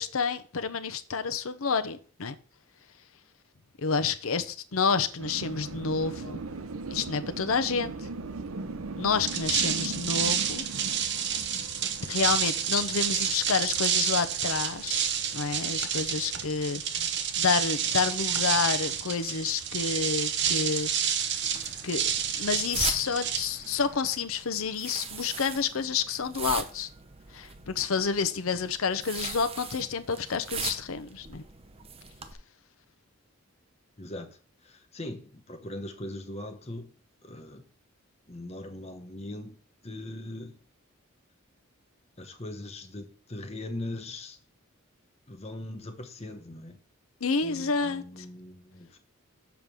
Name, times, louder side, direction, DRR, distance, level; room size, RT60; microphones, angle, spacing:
voice 1, 0.0-2.3 3.8-6.4 6.9-7.9 9.0-10.6 12.1-17.0 17.4-20.9 21.8-22.0 22.4-26.9 27.3-31.4 47.2-48.0, left 5 dB, 80° left, 0.7 m, -29 dB
sound 1, 5.2-16.6, right 3 dB, 85° right, 0.7 m, -40 dB
sound 2, 9.1-24.0, right 8 dB, 55° right, 0.9 m, -29 dB
sound 3, 21.4-32.3, right 6 dB, 30° right, 0.7 m, -40 dB
voice 2, 34.0-34.4 34.6-36.9 37.2-37.6 38.3-39.6 39.8-40.6 42.2-44.4 45.3-46.8 47.4-49.0, left 1 dB, 30° left, 1.0 m, -40 dB
7.1 x 5.2 x 6.1 m
head